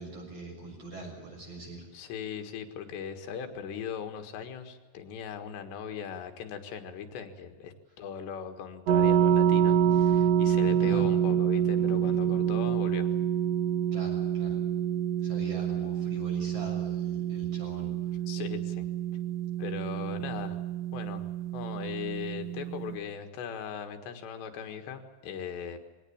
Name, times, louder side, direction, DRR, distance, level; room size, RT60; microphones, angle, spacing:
voice 1, 0.0-1.9 10.8-11.1 13.9-14.6 15.2-17.9, right 2 dB, 35° right, 0 dB, 7.8 m, -42 dB
voice 2, 1.9-13.1 18.3-18.9 19.6-20.6 20.9-21.3 21.5-25.8, left 7 dB, 90° left, 6 dB, 3.9 m, -39 dB
sound 1, 8.9-23.0, right 9 dB, 60° right, 1.7 m, -27 dB
22.5 x 17.5 x 8.7 m, 1.3 s
omnidirectional pair, 4.8 m